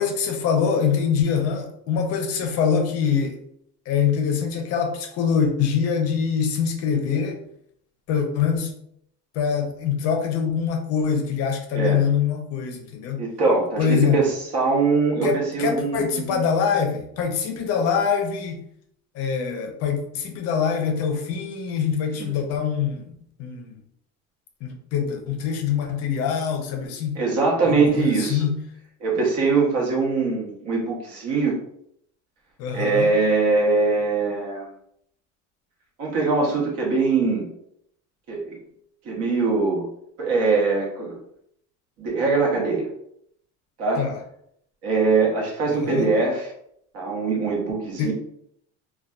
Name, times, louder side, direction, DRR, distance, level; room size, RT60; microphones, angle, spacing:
voice 1, 0.0-3.4 3.9-7.4 8.1-8.8 9.3-13.2 13.8-14.2 15.2-18.6 19.1-23.1 23.4-23.8 24.6-27.2 27.6-28.6 32.6-33.1 44.0-44.2 45.7-46.1 48.0-48.1, left 7 dB, 50° left, 4 dB, 0.5 m, -24 dB
voice 2, 13.2-16.4 22.2-22.3 27.1-28.5 29.0-31.6 32.7-34.7 36.0-37.4 38.3-38.6 39.0-39.9 40.2-41.2 42.0-42.9 43.8-44.0 44.8-46.5 46.9-48.1, right 4 dB, 50° right, -1 dB, 0.9 m, -22 dB
2.6 x 2.2 x 2.2 m, 0.70 s
cardioid pair, 160°, 31 cm